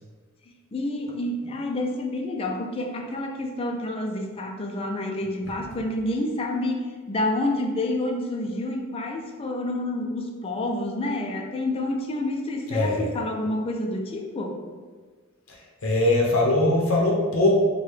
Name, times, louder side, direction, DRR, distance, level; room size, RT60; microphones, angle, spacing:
voice 1, 0.7-14.6, left 1 dB, 25° left, 1 dB, 0.4 m, -28 dB
voice 2, 12.7-13.1 15.5-17.6, left 1 dB, 70° left, -2 dB, 0.6 m, -21 dB
4.8 x 2.2 x 3.1 m, 1.5 s
head